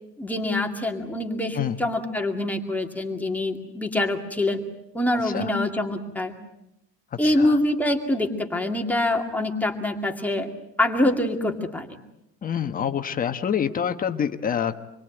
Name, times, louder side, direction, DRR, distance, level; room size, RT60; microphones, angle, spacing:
voice 1, 0.2-4.6 4.9-6.3 7.2-10.5 10.8-11.9, left 1 dB, 5° left, 2 dB, 2.3 m, -25 dB
voice 2, 7.1-7.6 12.4-14.8, left 8 dB, 25° left, 7 dB, 1.2 m, -27 dB
27.0 x 22.5 x 9.1 m, 0.83 s
cardioid pair, 170°, 31 cm